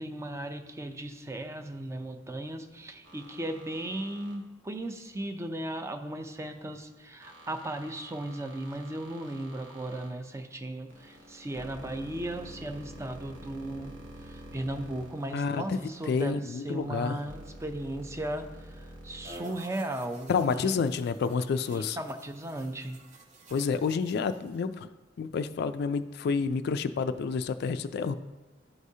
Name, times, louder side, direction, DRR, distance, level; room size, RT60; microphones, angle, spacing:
voice 1, 0.0-13.9 14.3-18.5 18.8-20.8 21.7-23.0, right 1 dB, 15° right, 7 dB, 0.5 m, -36 dB
sound 1, 3.0-4.4 7.2-10.1 10.9-16.3 16.8-19.3, right 1 dB, 70° right, 1.2 m, -48 dB
voice 2, 15.3-15.8 16.1-17.2 20.3-22.0 23.5-24.9 25.2-28.2, left 5 dB, 55° left, 11 dB, 0.3 m, -29 dB
sound 2, 19.2-24.7, right 2 dB, 40° right, 0.8 m, -51 dB
12.0 x 4.8 x 2.7 m, 1.3 s
head